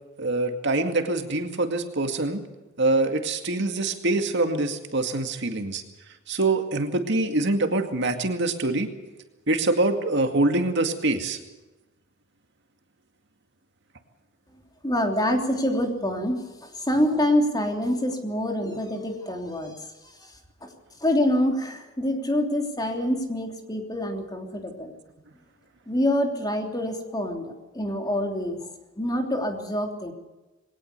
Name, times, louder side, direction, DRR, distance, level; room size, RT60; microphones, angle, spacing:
voice 1, 0.2-2.4 2.8-5.8 6.3-8.9 9.5-11.4, right 2 dB, 60° right, 6 dB, 2.2 m, -24 dB
voice 2, 14.8-19.8 20.0-20.3 20.6-20.7 21.0-24.9 25.9-28.7 29.0-30.1, left 1 dB, 20° left, 3 dB, 3.2 m, -26 dB
21.5 x 18.5 x 6.8 m, 1.1 s
head